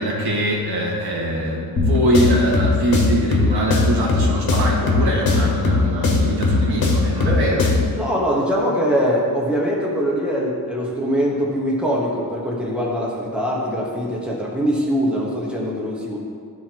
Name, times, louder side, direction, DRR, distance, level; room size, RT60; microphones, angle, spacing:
voice 1, 0.0-7.7, right 1 dB, 90° right, -4 dB, 1.9 m, -22 dB
sound 1, 1.8-8.0, left 3 dB, 70° left, 1.4 m, -20 dB
voice 2, 7.2-16.2, equal, 5° right, -4 dB, 1.3 m, -22 dB
13.5 x 4.5 x 3.0 m, 2.2 s
wide cardioid pair, 165°, 37 cm